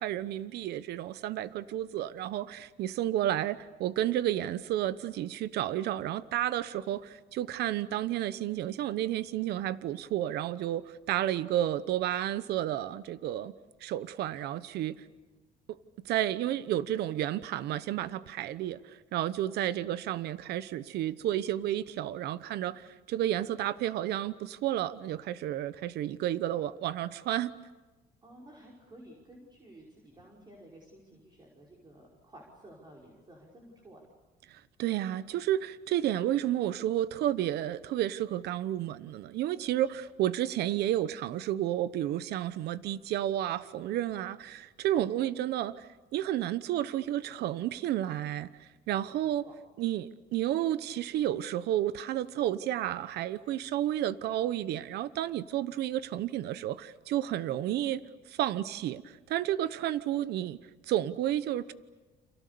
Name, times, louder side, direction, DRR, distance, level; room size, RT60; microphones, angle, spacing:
voice 1, 0.0-13.5 13.8-15.0 15.7-15.8 16.0-27.5 34.5-45.9 46.1-49.4 49.8-58.0 58.3-60.6 60.9-61.7, right 12 dB, 75° right, 15 dB, 1.0 m, -31 dB
voice 2, 28.2-34.0 49.2-49.5, right 1 dB, 25° right, -2 dB, 5.7 m, -53 dB
30.0 x 28.0 x 7.0 m, 1.2 s
cardioid pair, 110°, 17 cm